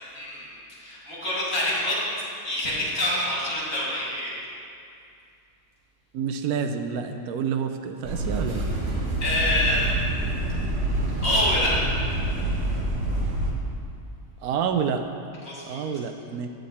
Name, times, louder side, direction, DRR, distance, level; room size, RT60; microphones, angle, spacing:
voice 1, 0.1-2.0 2.4-4.3 9.2-10.0 11.2-12.1 15.5-15.8, left 1 dB, 60° left, -8 dB, 3.2 m, -26 dB
voice 2, 6.1-8.7 14.4-15.0 15.6-16.5, right 7 dB, 80° right, 6 dB, 1.1 m, -28 dB
sound 1, 8.0-13.5, right 1 dB, 55° right, 1.5 m, -27 dB
9.3 x 8.2 x 4.2 m, 2.4 s
omnidirectional pair, 1.6 m